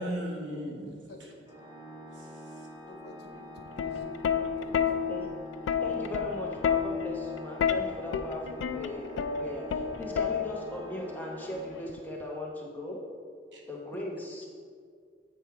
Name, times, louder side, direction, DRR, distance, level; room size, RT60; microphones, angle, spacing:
voice 1, 0.0-1.3 2.1-2.7 13.5-13.6, right 1 dB, 85° right, -1 dB, 1.2 m, -38 dB
voice 2, 0.8-1.7 2.9-4.8, left 2 dB, 60° left, 3 dB, 0.7 m, -51 dB
Organ, 1.5-12.3, equal, 25° right, 1.3 m, -46 dB
Plucked string instrument, 3.6-10.8 11.9-12.2, left 7 dB, 90° left, 0.3 m, -30 dB
voice 3, 5.8-9.1 9.4-13.0 13.7-14.5, left 1 dB, 10° left, -2 dB, 0.8 m, -38 dB
8.0 x 3.5 x 4.6 m, 2.1 s
head